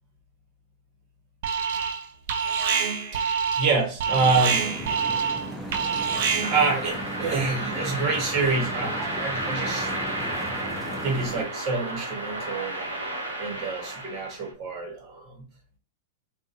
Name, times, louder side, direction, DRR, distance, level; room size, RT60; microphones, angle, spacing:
Alarm, 1.4-2.0 2.3-6.7, right 6 dB, 55° right, 0.6 m, -26 dB
voice 1, 3.6-4.6 6.5-9.9 11.0-12.9 13.4-15.4, right 4 dB, 40° right, 1.3 m, -27 dB
sound 1, 4.1-11.4, equal, ahead, 0.8 m, -36 dB
sound 2, 6.4-14.5, right 1 dB, 85° right, 0.9 m, -32 dB
3.7 x 2.3 x 2.7 m
figure-of-eight pair, 100°, 0 cm